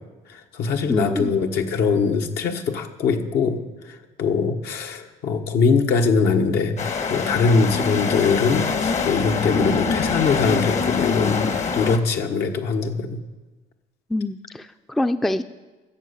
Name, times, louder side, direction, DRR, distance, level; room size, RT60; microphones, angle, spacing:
voice 1, 0.3-6.8 7.1-13.2, left 5 dB, 75° left, 4 dB, 1.4 m, -22 dB
voice 2, 0.9-1.3 14.1-15.4, left 1 dB, ahead, 10 dB, 0.4 m, -25 dB
sound 1, 6.8-12.0, left 5 dB, 45° left, 1.1 m, -24 dB
13.5 x 7.1 x 8.3 m, 1.2 s
cardioid pair, 110°, 17 cm